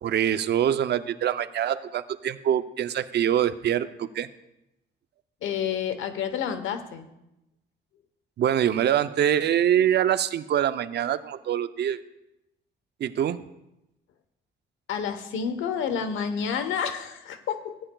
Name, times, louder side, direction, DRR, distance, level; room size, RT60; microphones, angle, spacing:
voice 1, 0.0-4.3 8.4-12.0 13.0-13.4, right 10 dB, 60° right, 12 dB, 0.6 m, -24 dB
voice 2, 5.4-7.1 14.9-17.8, left 7 dB, 80° left, 9 dB, 1.0 m, -29 dB
16.0 x 9.9 x 2.3 m, 0.88 s
cardioid pair, 90°, 20 cm